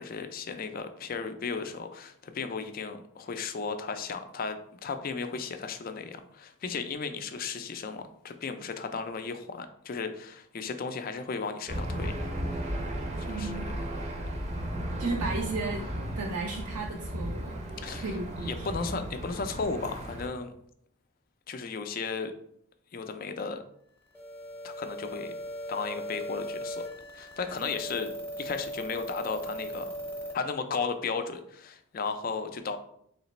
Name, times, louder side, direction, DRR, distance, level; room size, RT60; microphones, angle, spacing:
voice 1, 0.0-12.1 13.2-13.7 17.8-18.1 18.4-20.5 21.5-22.3 22.9-23.6 24.6-25.3 25.7-26.9 27.1-28.1 28.4-29.9 30.3-32.8, left 5 dB, 40° left, 8 dB, 0.3 m, -35 dB
Aircraft / Engine, 11.7-20.3, equal, 30° right, 0.6 m, -35 dB
voice 2, 13.2-13.7 15.0-15.9 16.2-17.5 17.9-19.0, right 3 dB, 75° right, 1 dB, 0.4 m, -34 dB
Dial Tone for a Phone (sci-fi edition), 24.1-30.3, equal, 10° left, 0.7 m, -38 dB
3.2 x 2.9 x 4.1 m, 0.69 s
head